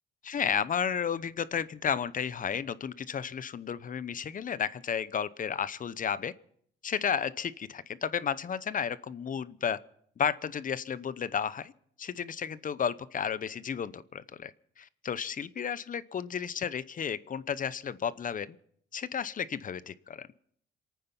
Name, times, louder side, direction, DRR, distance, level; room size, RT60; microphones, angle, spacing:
voice 1, 0.2-6.3 6.8-9.8 10.2-11.7 12.0-18.6 18.9-20.3, left 7 dB, 45° left, 16 dB, 0.8 m, -33 dB
27.5 x 9.4 x 5.6 m, 0.66 s
cardioid pair, 90°, 20 cm